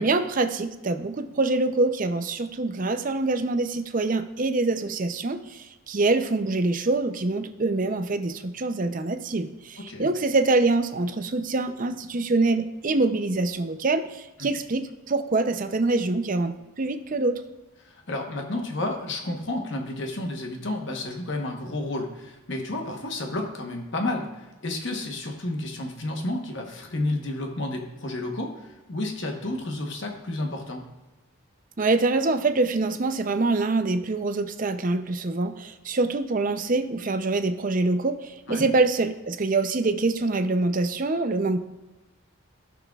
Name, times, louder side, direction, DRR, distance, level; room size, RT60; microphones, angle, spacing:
voice 1, 0.0-17.4 31.8-41.6, right 3 dB, 35° right, 9 dB, 0.5 m, -25 dB
voice 2, 9.8-10.1 14.4-14.5 17.8-30.8 38.5-38.6, left 2 dB, 55° left, 2 dB, 1.0 m, -31 dB
15.0 x 6.1 x 2.3 m, 1.1 s
head